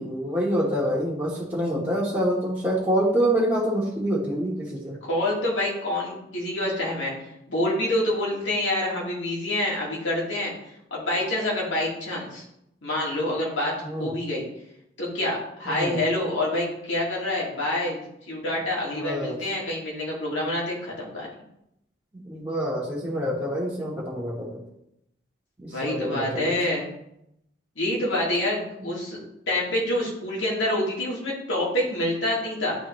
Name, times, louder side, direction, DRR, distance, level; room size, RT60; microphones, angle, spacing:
voice 1, 0.0-5.0 13.8-14.1 15.7-16.0 18.9-19.4 22.1-24.6 25.6-26.5, equal, 15° right, -9 dB, 1.1 m, -26 dB
voice 2, 5.0-10.5 10.9-12.4 12.8-13.7 14.0-14.4 15.0-21.3 25.7-26.9 27.8-29.2 29.5-32.8, left 1 dB, 80° left, -4 dB, 2.1 m, -27 dB
10.0 x 3.6 x 3.1 m, 0.80 s
head